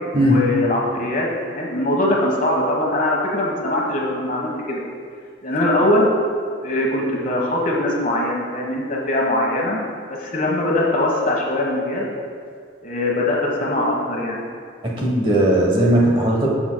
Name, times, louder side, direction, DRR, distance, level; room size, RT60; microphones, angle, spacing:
voice 1, 0.2-4.8 5.4-6.1 6.6-9.8 10.1-12.1 12.8-14.4, left 1 dB, 45° left, -2 dB, 1.3 m, -21 dB
voice 2, 14.8-16.5, right 1 dB, 25° right, -3 dB, 1.0 m, -17 dB
13.5 x 6.2 x 2.2 m, 2.1 s
head